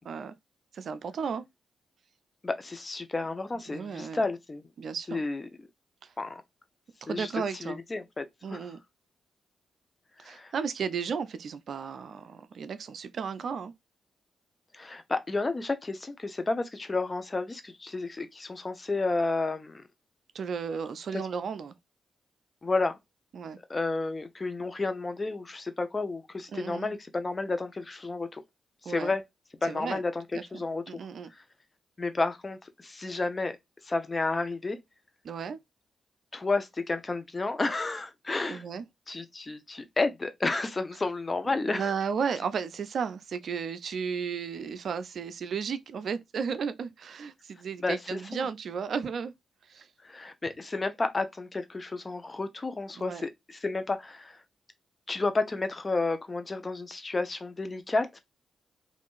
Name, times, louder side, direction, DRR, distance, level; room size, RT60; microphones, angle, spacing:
voice 1, 0.7-1.4 3.7-4.2 4.8-5.2 6.0-6.1 7.0-7.8 8.4-8.8 10.2-13.7 20.3-21.7 23.3-23.6 26.5-27.0 28.8-29.1 29.6-30.0 30.3-31.3 35.2-35.6 38.5-38.8 41.4-49.3 49.6-49.9 53.0-53.2, right 6 dB, 65° right, 0.4 m, -34 dB
voice 2, 2.4-4.6 5.1-5.4 6.2-6.4 7.1-7.3 7.6-8.2 8.5-8.7 10.2-10.5 14.7-19.8 22.6-23.0 23.7-28.4 28.8-29.2 29.6-30.2 30.5-30.8 31.3-31.4 32.0-33.6 33.8-34.8 36.3-38.6 39.1-41.9 47.8-48.5 50.0-54.4 55.1-58.2, left 3 dB, 35° left, 0.7 m, -31 dB
3.5 x 2.5 x 2.4 m
hypercardioid pair, 40°, 0 cm